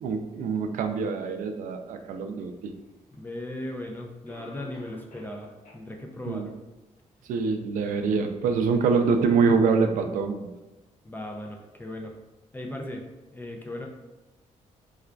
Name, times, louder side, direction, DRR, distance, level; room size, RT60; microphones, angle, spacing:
voice 1, 0.0-2.7 6.3-6.5 7.3-10.5, right 5 dB, 85° right, 6 dB, 0.4 m, -25 dB
Cough, 3.1-3.2 4.3-5.4 5.6-5.8 6.3-6.4 7.0-7.1, left 1 dB, 80° left, 0.9 m, -49 dB
voice 2, 3.1-6.5 11.0-12.1 12.5-13.0 13.3-13.9, left 1 dB, 15° left, 1 dB, 0.3 m, -37 dB
4.7 x 2.4 x 2.2 m, 1.0 s
cardioid pair, 140°, 13 cm